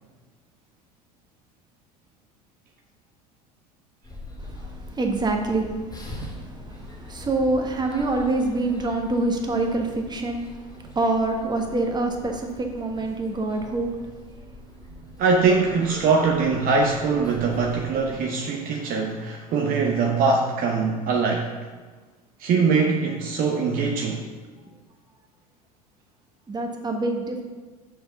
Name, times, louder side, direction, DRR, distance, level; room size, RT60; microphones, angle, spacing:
sound 1, 4.0-18.2, left 1 dB, 20° left, 2.2 m, -42 dB
voice 1, 4.4-14.0 14.4-14.5 26.5-27.4, right 2 dB, 20° right, 3 dB, 1.4 m, -26 dB
voice 2, 15.2-21.5 22.4-24.3, right 4 dB, 45° right, 1 dB, 0.9 m, -22 dB
6.6 x 5.7 x 5.7 m, 1.4 s
figure-of-eight pair, 70°, 20 cm